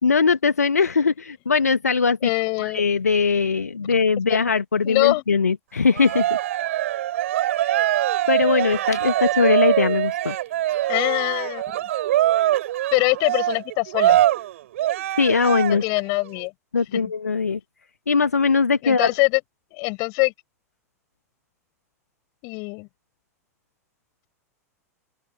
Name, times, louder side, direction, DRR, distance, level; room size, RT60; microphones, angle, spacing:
voice 1, 0.0-2.3 2.6-6.3 7.4-7.8 8.3-10.3 15.2-15.8 16.7-17.6 18.1-19.1, left 5 dB, 75° left, 1.6 m, -20 dB
voice 2, 2.2-2.8 4.8-5.2 10.9-11.9 12.9-14.2 15.7-16.5 16.9-17.0 18.8-19.4 19.7-20.3 22.4-22.9, left 34 dB, 45° left, 4.8 m, -23 dB
Cheering, 5.9-16.0, right 13 dB, 55° right, 5.2 m, -23 dB
open air
figure-of-eight pair, 90°, 9 cm